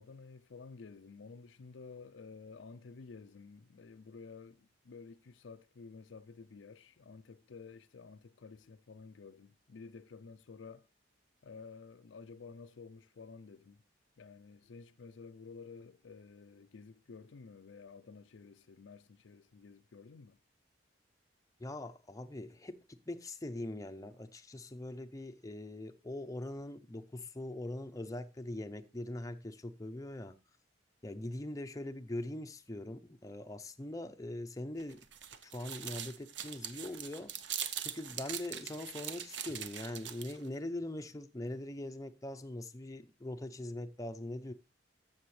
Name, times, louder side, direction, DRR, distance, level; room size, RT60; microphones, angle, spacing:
voice 1, 0.0-10.9 11.4-13.8 14.2-20.4, left 4 dB, 75° left, 0.5 m, -52 dB
voice 2, 21.6-30.4 31.0-35.0 35.4-37.3 37.8-44.5, left 1 dB, 20° left, 0.6 m, -42 dB
sound 1, 34.8-40.5, right 9 dB, 65° right, 0.8 m, -42 dB
12.5 x 7.2 x 3.2 m
head